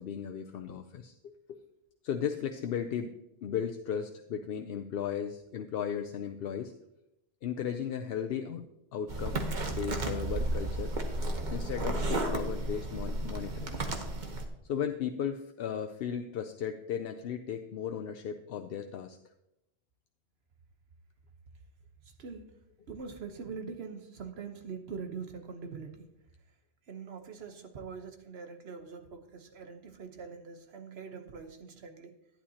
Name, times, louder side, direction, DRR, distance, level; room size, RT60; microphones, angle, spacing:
voice 1, 0.0-1.3 2.0-3.1 3.4-6.7 7.4-8.6 8.9-10.9 11.5-13.8 14.7-19.2, left 8 dB, 70° left, 5 dB, 0.8 m, -36 dB
sound 1, 9.1-14.5, right 2 dB, 45° right, 1.2 m, -33 dB
voice 2, 22.0-22.5 22.9-26.1 26.9-32.1, right 5 dB, 75° right, 6 dB, 1.2 m, -43 dB
11.5 x 10.0 x 2.8 m, 0.85 s
omnidirectional pair, 1.1 m